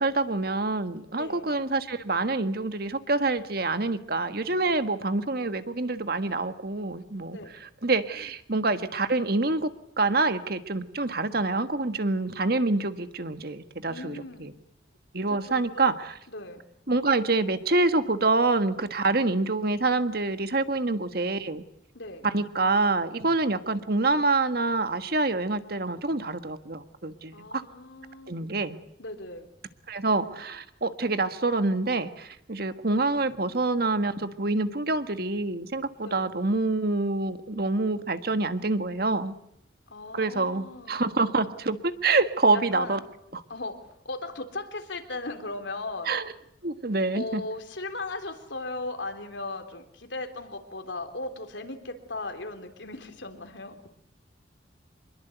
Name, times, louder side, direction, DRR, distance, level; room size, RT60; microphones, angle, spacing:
voice 1, 0.0-9.7 10.0-14.5 15.1-16.2 16.9-21.6 22.2-27.6 28.3-28.8 29.9-39.3 40.1-43.0 43.3-43.4 46.0-46.2 46.6-47.4, right 3 dB, 55° right, 10 dB, 1.6 m, -26 dB
voice 2, 1.1-1.5 7.3-7.5 13.9-14.5 15.3-15.9 16.3-16.6 21.9-22.3 27.3-28.6 29.0-29.5 36.0-36.3 39.9-41.0 42.5-43.0 43.5-46.1 47.1-53.8, left 2 dB, 80° left, 6 dB, 3.6 m, -37 dB
26.0 x 22.0 x 8.1 m, 0.74 s
head